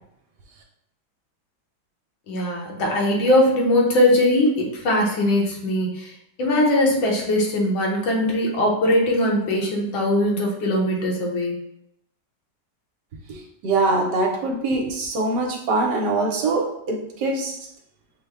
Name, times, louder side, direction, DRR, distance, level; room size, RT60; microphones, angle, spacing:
voice 1, 2.3-6.1 6.4-11.6, left 1 dB, 80° left, -1 dB, 1.8 m, -20 dB
voice 2, 13.3-17.6, right 3 dB, 70° right, 1 dB, 1.2 m, -23 dB
6.2 x 2.2 x 3.4 m, 0.78 s
omnidirectional pair, 2.1 m